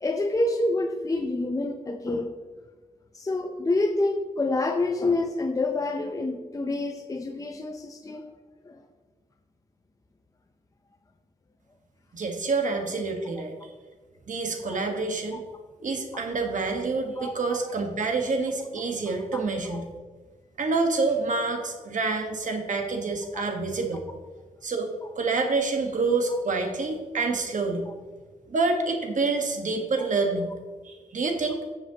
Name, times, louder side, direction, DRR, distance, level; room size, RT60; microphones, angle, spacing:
voice 1, 0.0-2.3 3.1-8.2 8.6-8.8 14.6-14.8 17.2-17.3 19.1-19.4 19.7-19.8 23.3-23.4 26.3-26.4, left 2 dB, 25° left, 5 dB, 0.6 m, -27 dB
voice 2, 12.1-13.5 14.3-15.4 15.8-19.9 20.6-24.0 24.6-27.9 28.5-30.5 30.8-31.6, right 3 dB, 70° right, 4 dB, 1.4 m, -27 dB
13.0 x 7.3 x 2.9 m, 1.4 s
wide cardioid pair, 105°, 14 cm